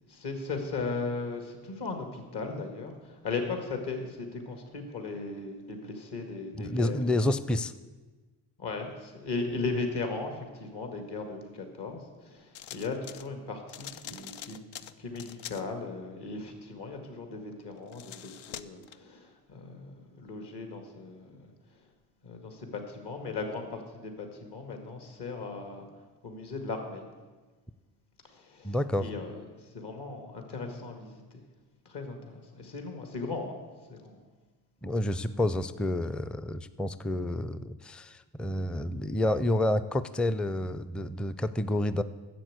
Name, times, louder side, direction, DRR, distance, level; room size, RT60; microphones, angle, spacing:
voice 1, 0.1-7.2 8.6-21.5 22.2-25.9 26.2-27.0 28.3-29.4 29.7-31.4 31.9-33.6 33.9-34.2, left 3 dB, 55° left, 5 dB, 2.1 m, -37 dB
voice 2, 6.5-7.7 28.6-29.1 34.8-42.0, left 1 dB, ahead, 14 dB, 0.4 m, -29 dB
sound 1, 12.5-13.3 13.7-15.7 17.8-19.0, left 10 dB, 80° left, 0.6 m, -44 dB
10.0 x 7.5 x 8.0 m, 1.3 s
hypercardioid pair, 45°, 47 cm